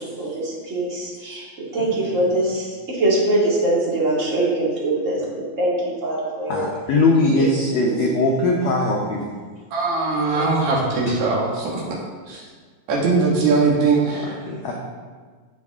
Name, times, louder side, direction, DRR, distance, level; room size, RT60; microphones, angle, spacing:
voice 1, 0.0-5.2 5.6-6.7 7.4-7.5 7.8-8.0, right 1 dB, 25° right, -5 dB, 1.8 m, -23 dB
voice 2, 6.5-9.3 11.1-11.2 14.5-14.8, left 2 dB, 85° left, -1 dB, 1.5 m, -20 dB
voice 3, 9.7-12.0 12.3-12.4 12.9-14.3, right 3 dB, 85° right, -4 dB, 3.8 m, -20 dB
16.0 x 5.3 x 3.6 m, 1.5 s
omnidirectional pair, 4.4 m